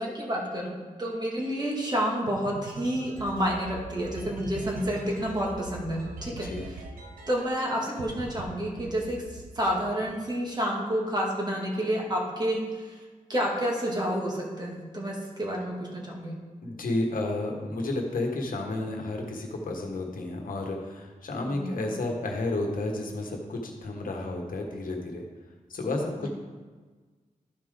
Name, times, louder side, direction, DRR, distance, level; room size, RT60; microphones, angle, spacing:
voice 1, 0.0-6.8 7.3-13.0 13.3-16.4 21.5-21.8 26.2-26.3, equal, 30° right, -2 dB, 2.1 m, -30 dB
sound 1, 2.3-7.7 8.0-8.4 8.8-10.2, right 2 dB, 90° right, 0.9 m, -41 dB
voice 2, 16.6-25.2 25.7-26.3, left 2 dB, 80° left, 2 dB, 1.3 m, -31 dB
12.5 x 4.8 x 3.8 m, 1.4 s
cardioid pair, 70°, 14 cm